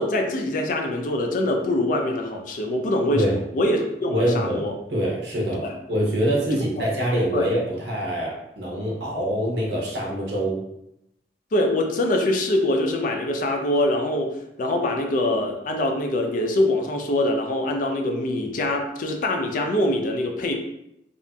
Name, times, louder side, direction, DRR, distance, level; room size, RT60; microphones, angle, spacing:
voice 1, 0.0-4.8 5.6-5.8 6.8-6.9 7.3-7.5 11.5-20.5, left 1 dB, 50° left, 3 dB, 0.4 m, -24 dB
voice 2, 4.1-5.6 5.9-10.6, equal, 65° right, -3 dB, 0.8 m, -25 dB
2.7 x 2.4 x 2.2 m, 0.82 s
head